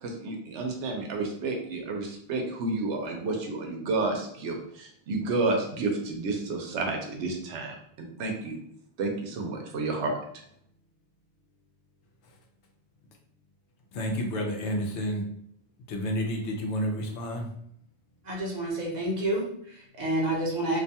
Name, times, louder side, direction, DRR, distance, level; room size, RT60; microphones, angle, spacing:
voice 1, 0.0-8.6 9.0-10.1, right 3 dB, 85° right, 2 dB, 0.9 m, -31 dB
voice 2, 13.9-15.2 15.9-17.5, equal, 80° left, 1 dB, 0.9 m, -30 dB
voice 3, 18.3-20.8, right 1 dB, 45° right, -3 dB, 0.8 m, -29 dB
2.5 x 2.2 x 2.7 m, 0.68 s
omnidirectional pair, 1.2 m